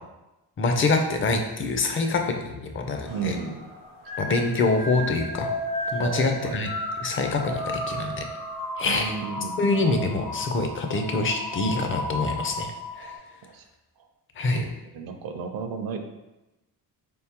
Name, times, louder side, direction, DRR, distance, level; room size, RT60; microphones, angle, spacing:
voice 1, 0.6-3.4 4.2-5.5 5.9-6.7 7.0-8.2 8.8-9.1 9.6-12.7 13.0-13.1 14.4-14.6, left 3 dB, 30° left, 5 dB, 0.4 m, -25 dB
sound 1, 3.0-13.2, left 1 dB, 85° left, 1.4 m, -34 dB
voice 2, 3.1-3.7 4.0-4.1 6.0-6.6 8.8-9.6 13.4-13.6 14.5-16.0, right 5 dB, 60° right, 6 dB, 0.6 m, -33 dB
4.0 x 3.6 x 2.9 m, 1.0 s
cardioid pair, 135°, 41 cm